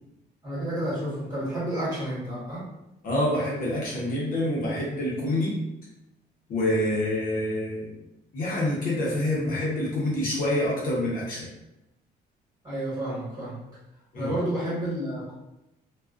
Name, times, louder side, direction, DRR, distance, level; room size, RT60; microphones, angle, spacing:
voice 1, 0.4-2.7 12.6-13.6 14.1-15.3, right 1 dB, 20° right, -9 dB, 1.3 m, -30 dB
voice 2, 3.0-5.6 6.5-7.9 8.3-11.5 14.1-14.3, left 1 dB, 55° left, -5 dB, 0.8 m, -27 dB
2.3 x 2.3 x 2.3 m, 0.92 s
cardioid pair, 160°, 17 cm